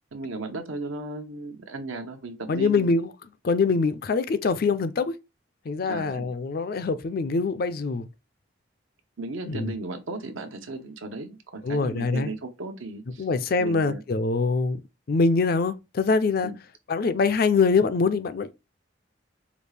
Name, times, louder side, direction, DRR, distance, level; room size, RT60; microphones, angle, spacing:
voice 1, 0.1-2.9 5.9-6.3 9.2-13.3 13.6-14.0 16.4-16.5, right 2 dB, 80° right, 0.9 m, -36 dB
voice 2, 2.5-3.1 3.4-5.1 5.7-8.1 9.5-9.7 11.6-12.3 13.2-14.8 15.1-16.5 16.9-18.5, left 4 dB, 45° left, 0.4 m, -24 dB
5.1 x 2.4 x 3.2 m
head